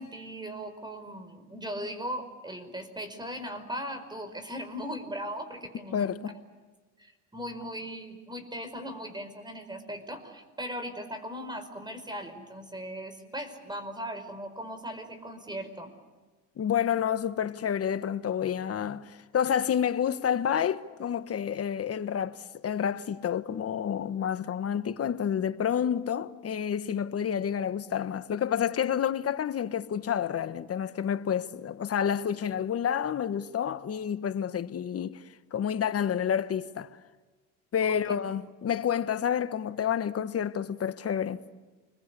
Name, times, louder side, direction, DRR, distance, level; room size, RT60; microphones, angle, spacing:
voice 1, 0.0-6.1 7.0-15.9 37.8-38.0, equal, 10° right, 5.0 m, -38 dB
voice 2, 5.9-6.3 16.6-22.4 22.6-35.2 35.5-37.0 37.7-41.4, left 8 dB, 40° left, 1.3 m, -29 dB
29.0 x 22.0 x 8.4 m
supercardioid pair, 90°, 36 cm